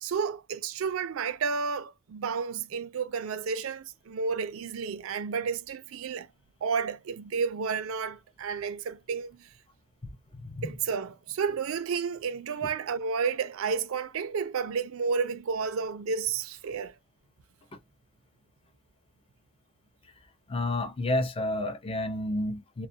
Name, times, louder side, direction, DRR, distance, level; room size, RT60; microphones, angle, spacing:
voice 1, 0.0-6.3 6.6-9.5 10.6-16.9, right 5 dB, 65° right, 0.4 m, -31 dB
voice 2, 10.3-10.7 17.7-17.8 20.5-22.9, left 1 dB, 25° left, 0.5 m, -30 dB
2.3 x 2.1 x 2.6 m
head